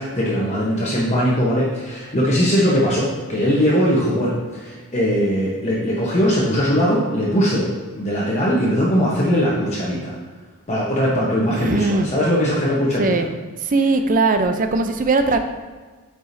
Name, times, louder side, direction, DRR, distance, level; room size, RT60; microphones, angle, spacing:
voice 1, 0.0-10.1 10.7-13.3, equal, 30° left, -5 dB, 1.0 m, -20 dB
voice 2, 11.5-12.1 13.0-13.3 13.6-15.4, right 3 dB, 40° right, 7 dB, 0.5 m, -19 dB
9.0 x 4.9 x 2.7 m, 1.4 s
head